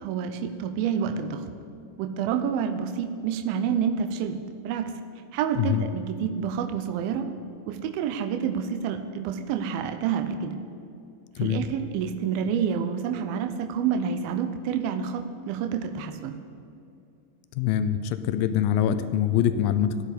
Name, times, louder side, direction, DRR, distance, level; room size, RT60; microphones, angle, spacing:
voice 1, 0.0-1.5 2.0-4.4 4.6-4.9 5.3-7.3 7.7-10.6 11.4-16.4, right 7 dB, 85° right, 9 dB, 2.5 m, -28 dB
voice 2, 5.6-5.9 11.4-11.6 17.6-20.0, left 10 dB, 85° left, 12 dB, 2.4 m, -24 dB
9.1 x 8.4 x 8.3 m, 2.6 s
omnidirectional pair, 4.3 m